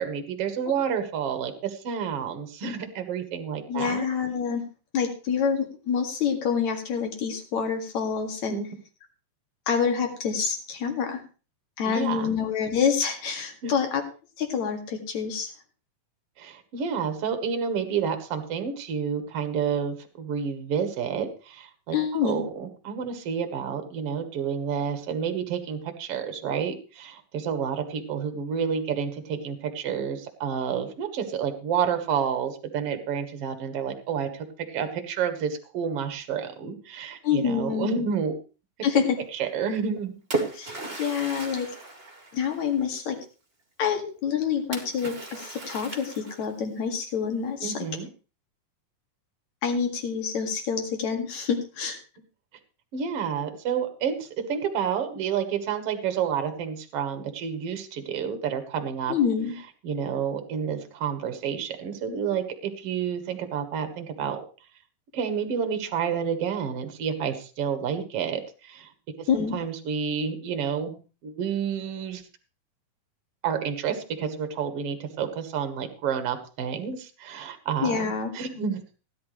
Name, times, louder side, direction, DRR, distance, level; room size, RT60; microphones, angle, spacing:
voice 1, 0.0-4.1 8.5-8.7 11.8-12.3 13.6-13.7 16.4-38.3 39.3-40.1 47.6-48.1 52.9-59.1 59.8-64.4 65.1-68.9 69.2-72.2 73.4-78.8, right 7 dB, 55° right, 8 dB, 1.9 m, -29 dB
voice 2, 3.7-4.6 4.9-8.6 9.7-11.2 11.8-14.0 14.4-15.5 21.9-22.4 37.2-37.9 38.8-39.2 40.6-41.7 42.3-43.2 43.8-47.9 49.6-52.0 59.1-59.5 69.3-69.6 77.8-78.3, left 7 dB, 55° left, 4 dB, 3.2 m, -27 dB
Splash splatter, 39.7-42.9 44.7-46.6, right 3 dB, 20° right, 2.0 m, -35 dB
17.0 x 11.0 x 3.2 m, 0.35 s
omnidirectional pair, 4.1 m